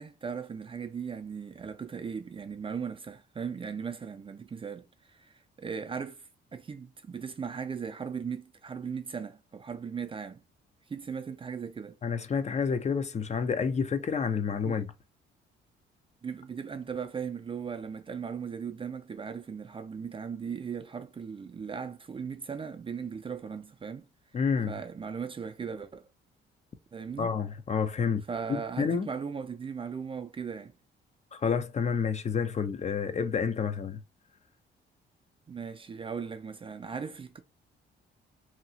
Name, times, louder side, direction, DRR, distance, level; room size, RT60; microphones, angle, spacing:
voice 1, 0.0-10.4 10.9-12.0 14.6-14.8 16.2-24.1 24.7-26.1 26.9-27.3 28.3-30.7 35.5-37.4, right 6 dB, 25° right, 0.4 m, -38 dB
voice 2, 12.0-14.9 24.3-24.8 27.2-28.2 28.5-29.1 31.3-34.0, left 6 dB, 35° left, 0.5 m, -29 dB
2.8 x 2.3 x 2.8 m
cardioid pair, 90°, 20 cm